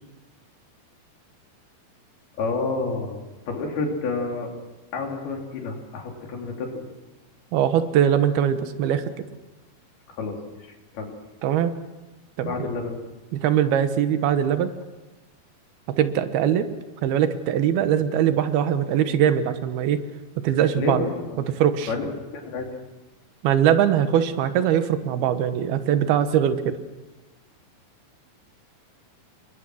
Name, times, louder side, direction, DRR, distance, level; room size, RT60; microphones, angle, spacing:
voice 1, 2.4-3.2 3.5-4.5 4.9-6.8 10.2-10.4 10.9-11.1 12.4-13.0 20.8-21.3 21.9-22.1 22.3-22.7, left 3 dB, 85° left, 1 dB, 5.1 m, -29 dB
voice 2, 7.5-9.0 11.4-11.7 12.4-12.7 13.3-14.7 16.0-16.7 17.0-20.0 20.4-21.1 21.5-21.9 23.4-26.8, right 9 dB, 85° right, 10 dB, 3.1 m, -21 dB
28.5 x 21.5 x 6.3 m, 1.1 s
omnidirectional pair, 4.3 m